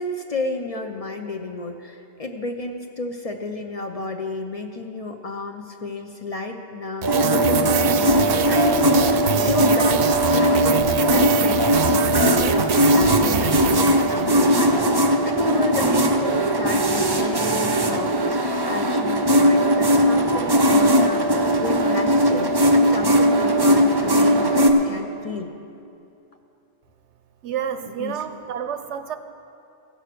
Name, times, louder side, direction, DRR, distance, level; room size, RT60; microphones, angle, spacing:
voice 1, 0.0-10.1 10.3-25.5 27.8-28.2, left 3 dB, 40° left, 4 dB, 0.6 m, -31 dB
sound 1, 7.0-24.7, equal, 30° right, 0.5 m, -19 dB
sound 2, 7.0-14.6, right 8 dB, 65° right, 0.8 m, -26 dB
voice 2, 27.4-29.2, right 8 dB, 90° right, 9 dB, 1.0 m, -29 dB
15.5 x 6.2 x 6.6 m, 2.7 s
omnidirectional pair, 1.1 m